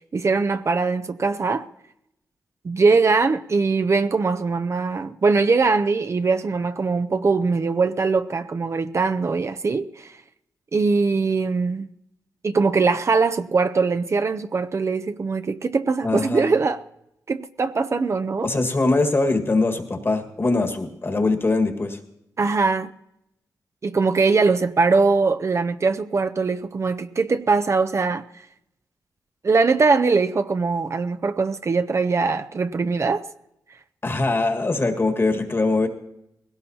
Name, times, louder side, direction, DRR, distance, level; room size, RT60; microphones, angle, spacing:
voice 1, 0.0-1.7 2.6-10.2 10.7-11.9 12.4-16.8 17.3-18.5 22.4-22.9 23.8-28.2 29.4-33.2, right 4 dB, 45° right, 0.6 m, -21 dB
voice 2, 16.0-16.5 18.4-22.0 34.0-35.9, left 3 dB, 35° left, 1.7 m, -22 dB
20.0 x 17.0 x 2.8 m
cardioid pair, 80°, 7 cm